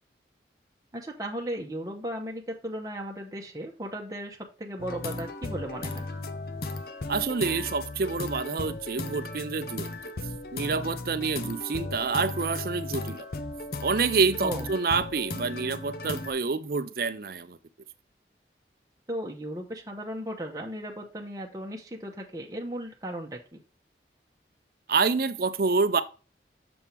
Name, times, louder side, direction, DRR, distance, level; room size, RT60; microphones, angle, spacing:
voice 1, 0.9-6.1 14.4-14.7 19.1-23.6, right 1 dB, 20° right, 1.0 m, -36 dB
sound 1, 4.8-16.3, left 2 dB, 55° left, 0.7 m, -36 dB
voice 2, 7.1-9.9 10.5-13.3 13.8-17.6 24.9-26.0, right 4 dB, 55° right, 0.5 m, -27 dB
7.0 x 3.5 x 4.4 m
head